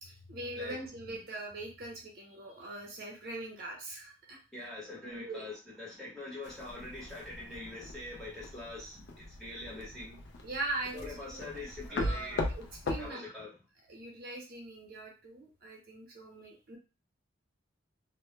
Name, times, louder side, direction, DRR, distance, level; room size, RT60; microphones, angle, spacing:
voice 1, 0.0-4.4 5.1-5.5 10.4-11.5 11.9-13.3 13.9-16.8, right 2 dB, 50° right, -1 dB, 0.6 m, -41 dB
voice 2, 4.5-10.2 10.9-12.5 13.0-13.5, left 2 dB, ahead, -7 dB, 0.9 m, -44 dB
sound 1, 6.4-13.1, left 2 dB, 60° left, 0.4 m, -39 dB
2.2 x 2.1 x 3.0 m, 0.31 s
head